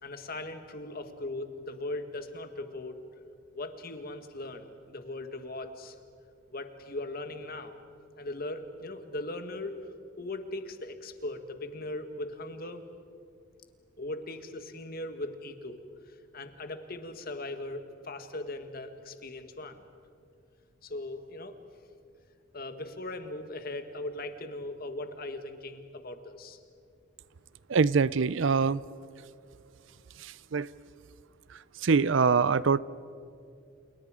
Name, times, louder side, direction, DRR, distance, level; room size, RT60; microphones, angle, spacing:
voice 1, 0.0-3.0 3.5-6.0 6.5-7.8 8.2-9.8 10.2-12.8 14.0-19.8 20.8-21.6 22.5-26.6, left 2 dB, 45° left, 7 dB, 1.7 m, -39 dB
voice 2, 27.7-28.8 30.2-30.7 31.8-32.8, right 5 dB, 70° right, 19 dB, 0.5 m, -24 dB
29.5 x 29.0 x 5.1 m, 2.4 s
head